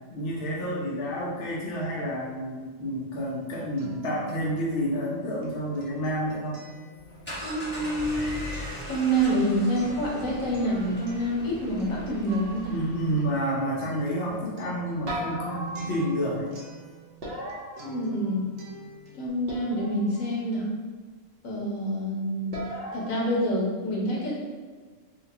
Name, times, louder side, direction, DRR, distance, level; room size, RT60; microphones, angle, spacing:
voice 1, 0.1-6.6 12.7-16.5, equal, 60° left, -5 dB, 0.9 m, -29 dB
Acoustic guitar, 3.3-17.5 17.8-19.3, right 2 dB, 85° right, 1.0 m, -47 dB
sound 1, 7.0-13.3, equal, 10° left, 0.9 m, -39 dB
voice 2, 7.4-8.4 8.9-12.7 17.8-18.5 19.1-20.7 21.4-22.6 22.9-24.3, right 1 dB, 80° left, -5 dB, 1.4 m, -27 dB
sound 2, 12.3-13.2 15.1-16.4 17.2-18.5 19.5-20.3 22.5-23.1, right 1 dB, 50° right, 0.9 m, -37 dB
4.6 x 2.2 x 2.7 m, 1.5 s
omnidirectional pair, 1.4 m